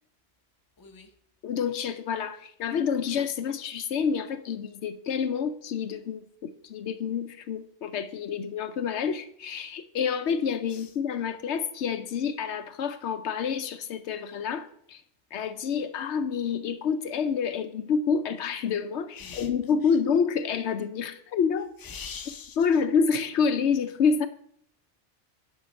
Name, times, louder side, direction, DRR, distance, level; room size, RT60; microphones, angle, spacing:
voice 1, 0.8-1.1 10.7-10.9 19.2-19.5 19.8-19.9 21.8-22.6, left 6 dB, 20° left, 5 dB, 0.7 m, -42 dB
voice 2, 1.4-15.0 15.3-21.7 22.6-24.3, left 6 dB, 70° left, 11 dB, 0.9 m, -28 dB
10.0 x 5.6 x 5.1 m, 0.69 s
omnidirectional pair, 1.2 m